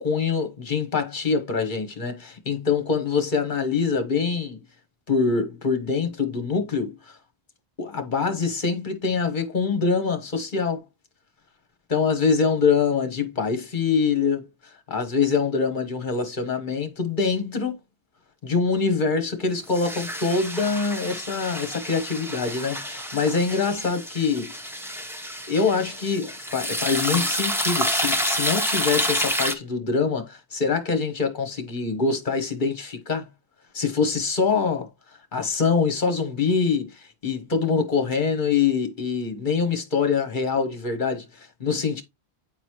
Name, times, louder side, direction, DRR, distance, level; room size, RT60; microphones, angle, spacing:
voice 1, 0.0-4.6 5.1-7.1 7.8-10.8 11.9-14.5 14.9-17.8 18.4-24.5 25.5-33.3 33.7-34.9 35.3-36.9 37.2-42.0, left 5 dB, 45° left, 1.3 m, -24 dB
sound 1, 19.7-29.5, equal, 5° right, 0.6 m, -28 dB
8.9 x 4.1 x 3.0 m
omnidirectional pair, 1.2 m